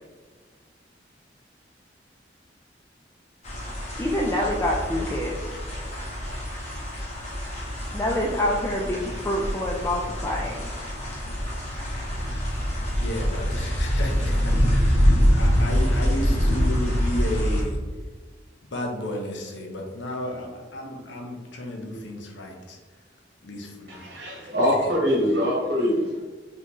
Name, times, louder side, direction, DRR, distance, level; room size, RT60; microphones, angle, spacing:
sound 1, 3.4-17.6, equal, 40° left, 1.3 m, -25 dB
voice 1, 4.0-5.4 7.9-10.7, left 1 dB, 15° left, -2 dB, 0.4 m, -26 dB
voice 2, 13.0-17.8 18.7-22.8 23.4-24.5, left 1 dB, 75° left, 2 dB, 0.8 m, -33 dB
voice 3, 23.9-26.2, equal, 60° right, -3 dB, 1.2 m, -23 dB
4.1 x 3.8 x 3.2 m, 1.4 s
head